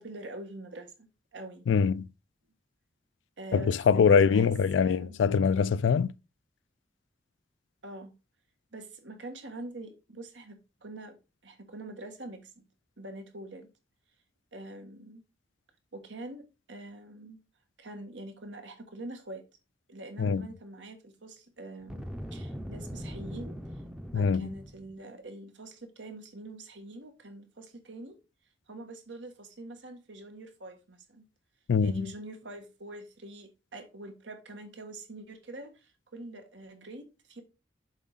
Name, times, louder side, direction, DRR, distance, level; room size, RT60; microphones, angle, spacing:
voice 1, 0.0-1.7 3.4-5.2 7.8-8.1 8.7-11.2 11.4-12.6 13.0-13.7 14.5-15.2 15.9-17.4 17.8-19.4 19.9-22.1 22.3-23.6 24.1-28.2 28.7-31.2 31.8-37.4, right 2 dB, 85° right, 1.5 m, -44 dB
voice 2, 1.7-2.1 3.5-6.1 20.2-20.4 24.1-24.5 31.7-32.1, left 6 dB, 85° left, 0.3 m, -23 dB
Boom, 21.8-24.9, equal, 5° right, 0.6 m, -41 dB
7.3 x 4.7 x 4.0 m
head